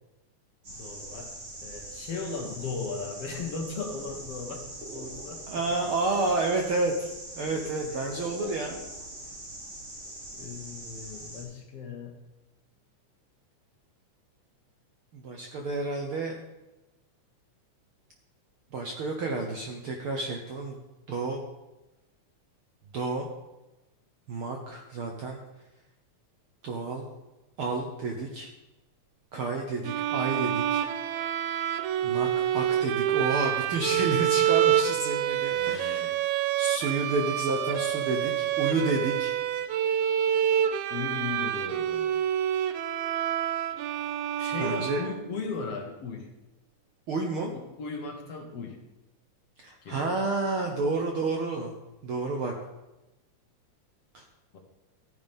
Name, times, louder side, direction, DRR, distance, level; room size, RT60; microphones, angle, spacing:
voice 1, 0.6-1.3 1.6-4.6 4.9-5.6 7.9-8.0 10.4-12.2 35.5-36.2 40.9-42.1 44.4-46.3 47.5-48.8 49.8-50.1 54.5-54.6, left 4 dB, 60° left, 2 dB, 2.2 m, -37 dB
sound 1, 0.6-11.4, right 1 dB, 45° right, 3.9 m, -42 dB
voice 2, 5.5-7.1 7.3-8.8 15.1-16.4 18.7-20.8 21.1-21.4 22.9-23.3 24.3-25.4 26.6-27.1 27.6-28.5 29.3-30.8 32.0-36.1 36.6-39.3 44.6-45.0 47.1-47.5 49.6-51.7 52.0-52.5 54.1-54.2, right 3 dB, 65° right, 1 dB, 1.4 m, -30 dB
sound 2, 29.8-45.5, right 10 dB, 80° right, 2.0 m, -27 dB
14.5 x 9.6 x 3.6 m, 1.0 s
omnidirectional pair, 3.5 m